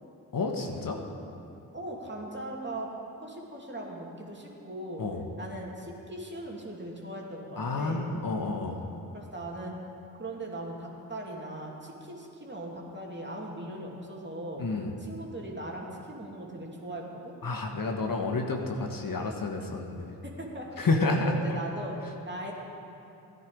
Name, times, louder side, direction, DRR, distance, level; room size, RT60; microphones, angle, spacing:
voice 1, 0.3-1.0 5.0-5.2 7.6-8.9 14.6-14.9 17.4-20.1 20.8-21.3, left 3 dB, 50° left, 2 dB, 1.4 m, -30 dB
voice 2, 1.7-2.9 3.2-5.0 5.4-8.1 9.1-9.7 10.2-14.7 15.0-17.3 20.2-22.5, right 1 dB, 25° right, -2 dB, 2.8 m, -39 dB
15.0 x 10.0 x 5.2 m, 2.7 s
supercardioid pair, 45°, 44 cm